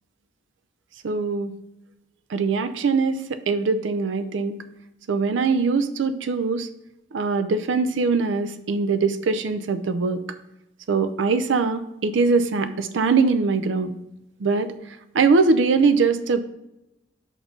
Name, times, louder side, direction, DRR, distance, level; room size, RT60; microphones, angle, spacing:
voice 1, 1.0-1.5 2.3-4.6 5.1-6.7 7.1-10.2 10.9-13.9 14.4-14.7 15.1-16.4, right 4 dB, 80° right, 11 dB, 0.5 m, -22 dB
5.3 x 4.3 x 5.8 m, 0.91 s
head